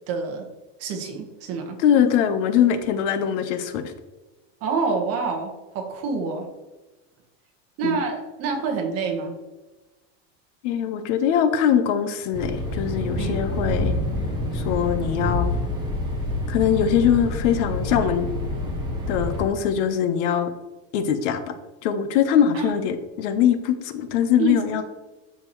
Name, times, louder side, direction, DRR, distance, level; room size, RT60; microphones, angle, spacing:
voice 1, 0.1-0.5 0.8-1.8 4.6-6.5 7.8-9.4 13.2-13.5 22.5-22.7 24.4-24.5, right 5 dB, 40° right, 3 dB, 1.5 m, -27 dB
voice 2, 1.8-3.8 7.8-8.0 10.6-13.9 14.5-15.5 16.5-18.3 19.1-20.5 20.9-21.5 21.8-24.8, left 9 dB, 70° left, 9 dB, 1.0 m, -22 dB
sound 1, 12.3-19.5, left 1 dB, 10° right, 1.1 m, -27 dB
Boom, 12.8-15.9, left 3 dB, 55° left, 1.4 m, -35 dB
13.0 x 4.4 x 3.1 m, 1.1 s
supercardioid pair, 160°, 37 cm